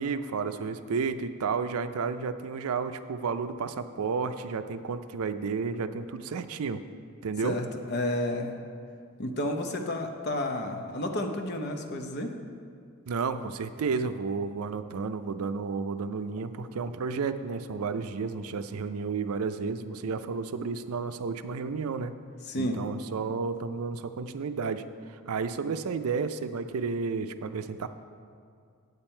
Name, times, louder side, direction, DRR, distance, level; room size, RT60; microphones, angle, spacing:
voice 1, 0.0-6.8 7.2-7.6 13.1-22.2 22.6-27.9, right 5 dB, 80° right, 10 dB, 0.4 m, -32 dB
voice 2, 7.4-8.5 9.2-12.4 22.4-22.9, left 1 dB, 50° left, 4 dB, 0.7 m, -31 dB
8.8 x 8.1 x 4.4 m, 2.3 s
head